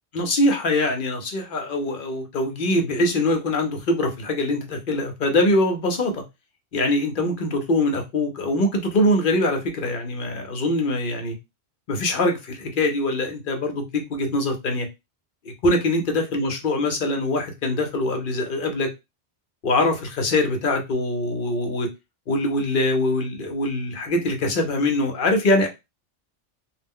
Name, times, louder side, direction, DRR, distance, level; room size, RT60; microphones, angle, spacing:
voice 1, 0.1-6.2 6.7-11.3 11.9-14.9 15.4-18.9 19.6-21.9 22.3-25.7, left 1 dB, 55° left, 0.8 m, -23 dB
2.4 x 2.0 x 3.5 m
omnidirectional pair, 1.2 m